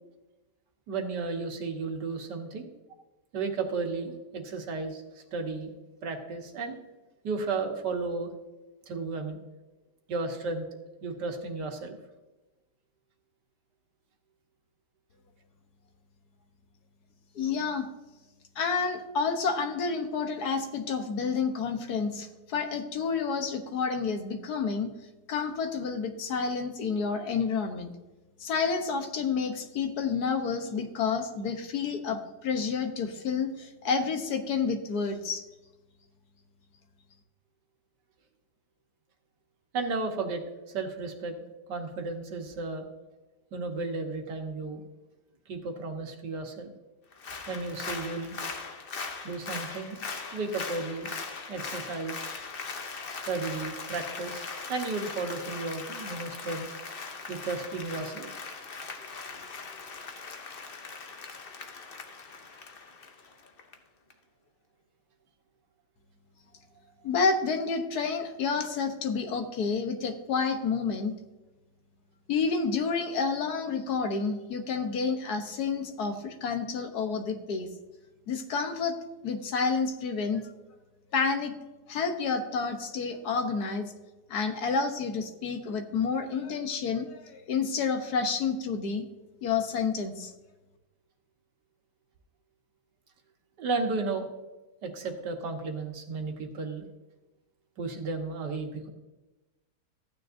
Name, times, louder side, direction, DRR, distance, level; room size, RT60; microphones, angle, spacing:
voice 1, 0.9-2.7 3.3-5.7 6.0-6.8 7.2-8.3 8.9-9.4 10.1-10.6 11.0-12.0 39.7-41.3 41.7-42.9 43.5-44.8 45.5-46.7 47.5-48.4 49.2-50.0 50.3-51.1 51.5-52.4 53.1-54.4 54.7-56.7 57.3-58.3 93.6-94.3 94.8-96.9 97.8-98.9, right 3 dB, 90° right, 4 dB, 1.8 m, -33 dB
voice 2, 17.3-17.9 18.6-24.9 25.3-27.9 28.4-35.4 67.0-71.1 72.3-77.7 78.3-79.0 79.2-80.5 81.1-81.5 81.9-83.9 84.3-89.1 89.4-90.3, left 5 dB, 70° left, 6 dB, 1.5 m, -29 dB
Applause, 47.1-63.7 64.1-64.2, left 4 dB, 45° left, 0.8 m, -40 dB
14.5 x 9.4 x 2.6 m, 1.1 s
omnidirectional pair, 1.8 m